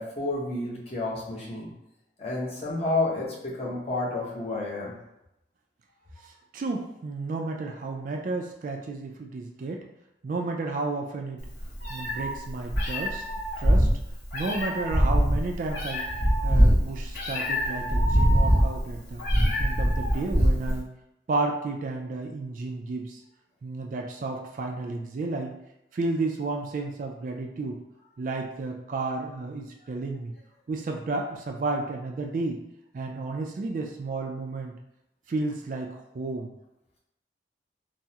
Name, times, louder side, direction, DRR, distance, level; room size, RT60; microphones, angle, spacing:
voice 1, 0.0-1.7 2.2-4.9, left 2 dB, 35° left, -5 dB, 0.8 m, -30 dB
voice 2, 6.2-9.9 10.2-11.4 11.9-13.2 13.6-13.9 14.3-16.1 16.4-19.2 19.6-20.9 21.3-23.2 23.6-25.6 25.9-27.8 28.2-30.3 30.7-32.6 32.9-34.7 35.3-36.5, right 3 dB, 45° right, 2 dB, 0.3 m, -32 dB
Meow, 11.4-20.8, equal, 60° left, 1.5 m, -23 dB
3.4 x 2.0 x 2.8 m, 0.85 s
head